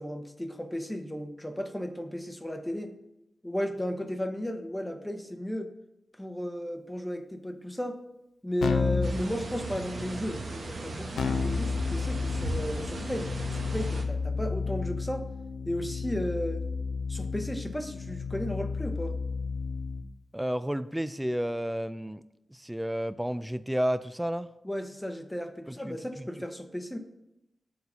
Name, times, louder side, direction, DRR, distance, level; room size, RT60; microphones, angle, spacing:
voice 1, 0.0-3.0 3.4-5.7 6.2-8.0 8.4-15.2 15.7-16.6 17.1-19.2 24.6-27.0, equal, 10° left, 6 dB, 0.8 m, -34 dB
Keyboard (musical), 8.6-9.2 11.2-20.1, left 5 dB, 90° left, 0.5 m, -32 dB
sound 1, 9.0-14.0, right 2 dB, 65° right, 1.0 m, -37 dB
voice 2, 20.3-22.2 22.5-24.5 25.7-26.3, equal, 5° right, 14 dB, 0.3 m, -31 dB
6.5 x 4.6 x 5.5 m, 0.90 s
cardioid pair, 45°, 0 cm